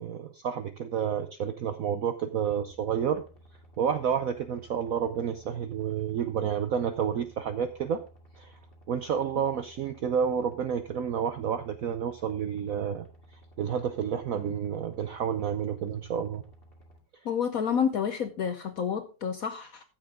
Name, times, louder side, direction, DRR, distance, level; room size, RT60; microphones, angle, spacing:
voice 1, 0.0-3.2 3.8-8.0 8.4-8.5 8.9-13.1 13.6-16.4, right 8 dB, 70° right, 0.8 m, -30 dB
sound 1, 2.5-17.0, right 1 dB, 30° left, 2.2 m, -55 dB
voice 2, 17.2-19.8, left 7 dB, 65° left, 0.8 m, -29 dB
13.5 x 7.6 x 3.6 m
omnidirectional pair, 2.2 m